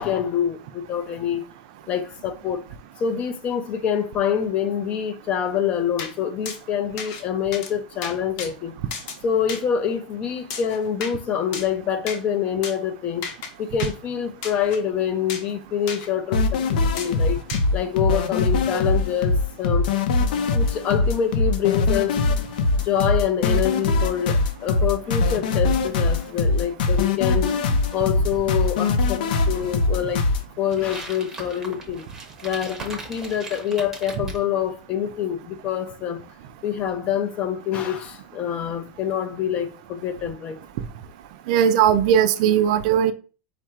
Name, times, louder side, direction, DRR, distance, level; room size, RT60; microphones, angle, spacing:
voice 1, 0.0-1.4 1.9-2.7 3.0-8.7 9.2-13.3 13.6-17.4 17.7-19.9 20.5-22.2 22.8-27.6 27.9-30.3 30.6-32.1 32.4-36.2 36.6-40.6, left 8 dB, 25° left, 0.4 m, -26 dB
sound 1, 6.0-6.1 6.5-6.6 7.0-7.2 7.5-7.7 8.0-8.5 8.9-9.2 9.5-9.6 10.5-11.2 11.5-11.7 12.1-12.2 12.6-12.8 13.2-13.5 13.8-13.9 14.4-14.8 15.3-15.5 15.9-16.1 17.0-17.1 17.5-17.7, left 6 dB, 45° left, 0.8 m, -33 dB
sound 2, 16.3-30.4, left 3 dB, 80° left, 0.6 m, -22 dB
sound 3, 30.7-34.4, right 2 dB, 10° right, 0.7 m, -39 dB
voice 2, 41.5-43.1, right 9 dB, 55° right, 0.4 m, -18 dB
4.4 x 2.5 x 4.4 m
supercardioid pair, 170°, 5 cm